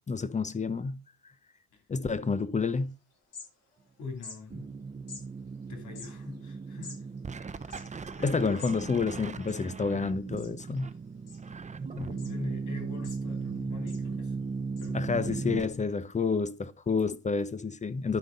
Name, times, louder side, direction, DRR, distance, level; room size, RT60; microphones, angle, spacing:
voice 1, 0.1-1.0 1.9-2.9 8.2-10.9 14.9-18.2, left 4 dB, 25° left, 0.8 m, -29 dB
sound 1, 2.7-2.8 3.1-3.9 4.2-4.4 5.1-5.2 5.8-8.8 9.1-9.2 9.4-10.0 10.4-10.8 11.3-11.8 12.2-12.3 12.8-13.5 13.9-14.1 14.8-14.9, left 5 dB, 55° left, 4.3 m, -47 dB
voice 2, 4.0-4.7 5.7-6.9 7.6-7.8 8.2-8.5 11.9-14.3 14.8-15.7, left 4 dB, 75° left, 2.9 m, -42 dB
sound 2, 4.5-15.7, right 4 dB, 25° right, 0.7 m, -37 dB
11.5 x 5.2 x 3.9 m
cardioid pair, 90°, 30 cm